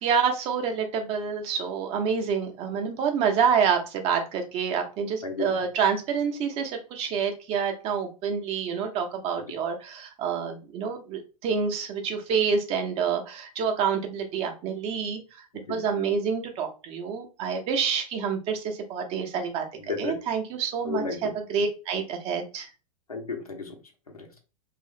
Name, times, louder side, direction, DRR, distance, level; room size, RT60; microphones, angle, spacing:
voice 1, 0.0-15.2 15.7-19.6 20.0-22.7, right 6 dB, 35° right, 4 dB, 0.7 m, -27 dB
voice 2, 5.2-5.6 9.4-9.5 15.5-15.8 19.8-20.1 20.8-21.3 23.1-23.7 24.1-24.4, left 4 dB, 80° left, 3 dB, 0.8 m, -33 dB
3.0 x 2.4 x 2.7 m, 0.32 s
figure-of-eight pair, 95°, 19 cm